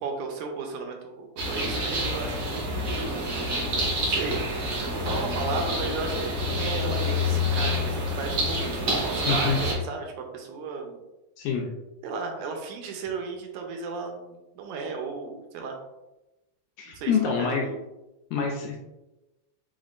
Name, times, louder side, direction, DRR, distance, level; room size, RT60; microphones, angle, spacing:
voice 1, 0.0-3.3 4.0-11.0 12.0-15.8 16.9-17.1 17.4-17.8, right 4 dB, 80° right, 3 dB, 1.9 m, -35 dB
sound 1, 1.4-9.7, left 1 dB, 50° right, 2.1 m, -27 dB
voice 2, 9.3-9.6 11.4-11.7 16.8-17.6 18.3-18.8, left 6 dB, 85° left, -1 dB, 1.7 m, -26 dB
5.2 x 3.6 x 2.5 m, 1.0 s
omnidirectional pair, 3.9 m